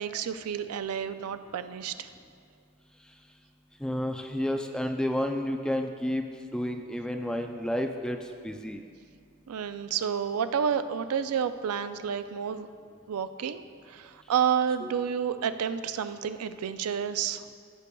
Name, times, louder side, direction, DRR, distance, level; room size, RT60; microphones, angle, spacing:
voice 1, 0.0-2.1 9.5-12.7 13.1-13.6 13.9-17.4, right 7 dB, 90° right, 11 dB, 0.4 m, -30 dB
voice 2, 3.8-8.2 8.4-8.8 14.8-14.9, left 1 dB, 5° left, 4 dB, 0.3 m, -31 dB
15.0 x 6.7 x 2.3 m, 2.2 s
head